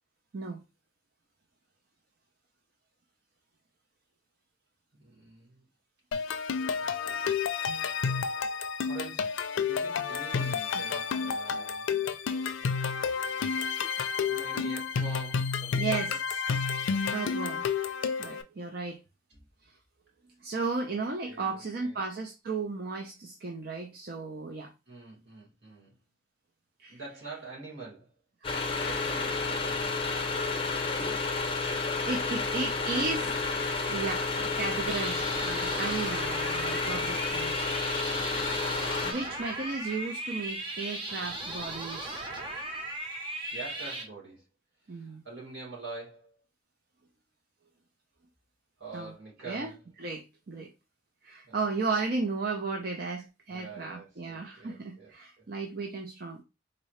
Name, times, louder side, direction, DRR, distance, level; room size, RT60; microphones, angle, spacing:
voice 1, 4.9-5.7 6.3-7.2 7.9-8.5 8.8-13.6 14.2-16.2 19.3-19.5 20.9-21.0 21.3-22.0 24.9-26.0 26.9-28.1 28.8-30.1 32.5-33.1 36.6-37.7 39.3-39.7 43.5-44.4 44.8-46.4 48.8-49.8 51.4-51.6 53.5-55.5, right 3 dB, 75° right, 2.4 m, -47 dB
sound 1, 6.1-18.4, left 6 dB, 90° left, 0.4 m, -30 dB
voice 2, 15.8-16.1 17.1-17.7 18.2-19.0 20.4-24.7 26.8-27.0 28.4-28.8 31.6-33.3 33.8-37.8 39.0-42.2 44.9-45.2 48.9-49.1 49.4-49.7 50.0-50.7 51.2-56.4, right 3 dB, 55° right, 0.5 m, -34 dB
sound 2, 28.4-39.1, left 4 dB, 30° left, 0.7 m, -31 dB
sound 3, 34.9-44.0, right 1 dB, 30° right, 0.8 m, -37 dB
4.0 x 2.7 x 3.1 m
head